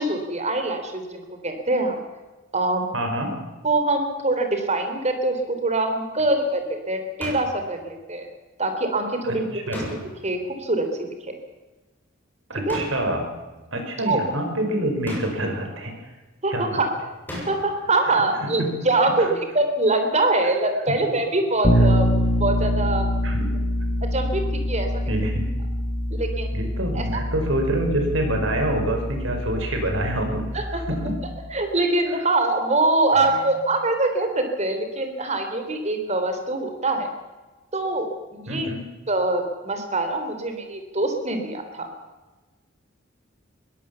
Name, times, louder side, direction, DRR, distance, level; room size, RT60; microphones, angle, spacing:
voice 1, 0.0-2.0 2.5-2.9 3.6-8.3 8.6-9.8 10.2-10.9 12.7-12.8 14.1-14.2 16.4-16.9 17.5-22.1 22.4-23.1 24.1-24.9 26.1-26.5 26.9-27.0 30.5-30.6 31.5-37.1 37.7-38.7 39.1-41.9, right 2 dB, 35° right, 6 dB, 3.8 m, -24 dB
voice 2, 2.9-3.4 9.2-9.8 12.5-13.3 13.7-15.9 16.5-16.9 18.1-18.8 19.1-19.3 20.4-20.5 21.7-21.9 23.2-23.4 25.1-25.4 26.5-30.4 30.7-31.2 32.2-32.3 33.1-33.4 38.5-38.8, right 1 dB, 75° right, 4 dB, 5.6 m, -27 dB
sound 1, 7.2-7.6 9.7-10.4 12.7-13.2 15.0-15.6 17.3-17.8, left 1 dB, 10° left, 7.9 m, -34 dB
Bass guitar, 21.6-31.5, equal, 35° left, 2.1 m, -25 dB
22.0 x 17.5 x 7.1 m, 1.2 s
head